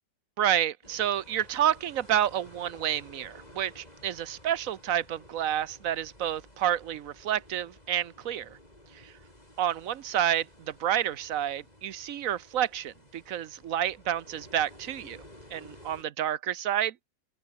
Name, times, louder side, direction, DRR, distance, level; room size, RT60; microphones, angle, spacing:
voice 1, 0.4-8.6 9.0-9.1 9.6-15.2 15.5-17.1, right 10 dB, 55° right, 1.1 m, -29 dB
sound 1, 0.8-16.0, left 1 dB, 20° left, 6.9 m, -53 dB
open air
omnidirectional pair, 1.9 m